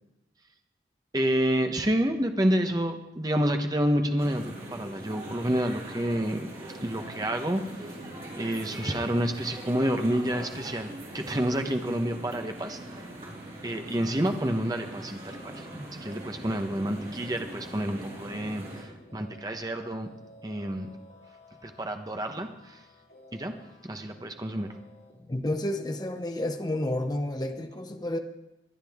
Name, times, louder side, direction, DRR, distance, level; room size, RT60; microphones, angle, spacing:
voice 1, 1.1-6.5 6.8-8.0 8.3-13.0 13.6-20.1 20.4-20.9 21.6-22.8 23.3-23.6 23.8-24.7, right 1 dB, 20° right, 5 dB, 0.9 m, -29 dB
sound 1, 4.2-18.8, right 1 dB, 35° right, 4.2 m, -42 dB
sound 2, 15.2-27.7, left 1 dB, 60° left, 2.8 m, -54 dB
voice 2, 25.3-28.2, left 1 dB, 20° left, 6 dB, 0.8 m, -30 dB
23.5 x 9.8 x 3.6 m, 0.94 s
head